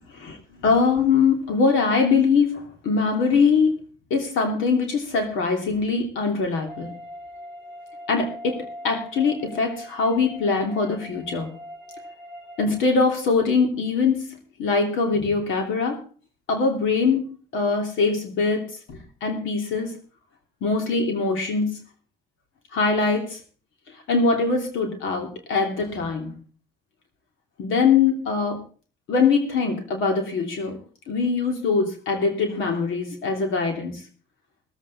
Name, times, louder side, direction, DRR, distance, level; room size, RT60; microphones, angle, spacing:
voice 1, 0.1-3.7 4.1-6.9 8.1-11.6 12.6-16.0 16.5-19.9 20.6-21.8 22.7-23.4 23.9-26.4 27.6-28.6 29.1-30.8 31.1-34.0, left 4 dB, 85° left, 3 dB, 3.0 m, -22 dB
sound 1, 6.7-12.7, equal, 5° right, 2.7 m, -41 dB
21.0 x 8.2 x 4.1 m, 0.39 s
cardioid pair, 90°, 20 cm